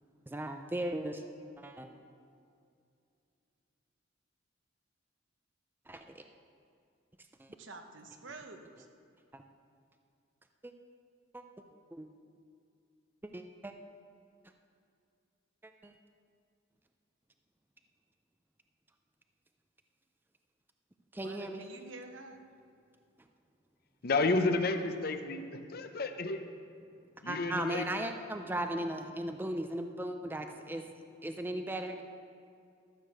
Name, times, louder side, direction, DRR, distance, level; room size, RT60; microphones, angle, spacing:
voice 1, 0.3-1.2 1.6-1.9 5.9-6.2 7.4-7.5 9.3-9.4 10.6-10.7 11.3-11.4 11.9-12.1 13.3-13.7 15.6-15.9 21.1-21.6 27.3-30.8 31.2-32.0, right 1 dB, 10° right, 6 dB, 0.5 m, -37 dB
voice 2, 7.6-8.9 21.2-22.4, right 3 dB, 70° right, 5 dB, 1.0 m, -48 dB
voice 3, 24.0-26.4 27.2-27.9, left 3 dB, 50° left, 7 dB, 0.7 m, -31 dB
13.5 x 6.6 x 6.7 m, 2.4 s
head